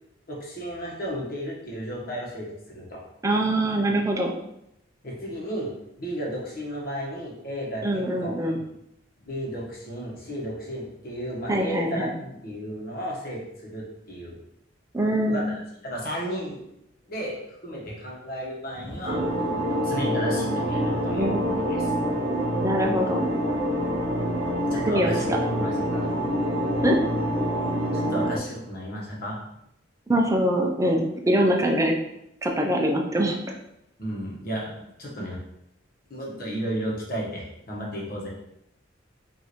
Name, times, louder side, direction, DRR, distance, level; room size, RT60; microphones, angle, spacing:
voice 1, 0.3-3.0 5.0-5.7 6.0-8.6 9.2-14.4 15.3-16.6 17.1-17.4 17.6-19.4 19.8-21.9 24.7-25.3 25.6-26.1 27.9-29.4 34.0-35.4 36.1-38.3, equal, 50° left, -3 dB, 1.2 m, -34 dB
voice 2, 3.2-4.3 7.8-8.6 11.5-12.1 14.9-15.4 21.2-21.4 22.6-23.2 24.8-25.1 26.8-27.0 30.1-31.9 32.4-33.6, right 1 dB, 15° right, 1 dB, 0.5 m, -23 dB
sound 1, 19.0-28.4, equal, 80° right, 0.9 m, -26 dB
5.1 x 2.7 x 3.0 m, 0.81 s
head